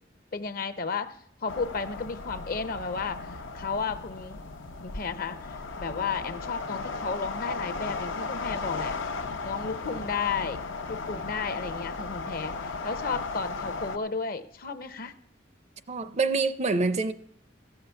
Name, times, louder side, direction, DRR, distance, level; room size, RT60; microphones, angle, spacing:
voice 1, 0.3-1.2 1.4-4.4 4.8-9.0 9.4-10.6 10.9-15.1, left 5 dB, 50° left, 0.7 m, -33 dB
sound 1, 1.5-14.0, left 4 dB, 85° left, 0.8 m, -36 dB
voice 2, 15.9-17.1, right 3 dB, 35° right, 0.5 m, -26 dB
15.0 x 5.8 x 6.8 m
head